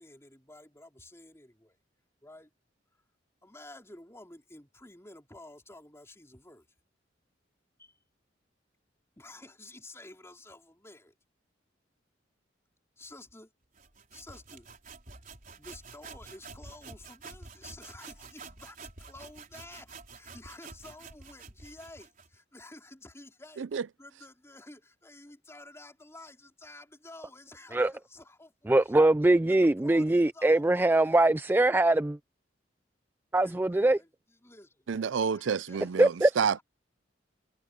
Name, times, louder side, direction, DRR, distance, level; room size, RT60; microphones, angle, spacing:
voice 1, 0.0-1.8 2.2-2.5 3.4-6.7 7.8-8.0 9.2-11.1 13.0-13.5 14.1-14.7 15.6-29.0 29.5-31.3 33.3-34.9 35.2-36.1 36.5-36.6, left 2 dB, 15° left, 4.0 m, -51 dB
sound 1, 13.8-22.4, right 4 dB, 45° right, 4.6 m, -49 dB
voice 2, 28.7-32.2 33.3-34.0 36.0-36.3, right 2 dB, 10° right, 0.3 m, -22 dB
voice 3, 34.9-36.6, right 6 dB, 90° right, 0.5 m, -29 dB
head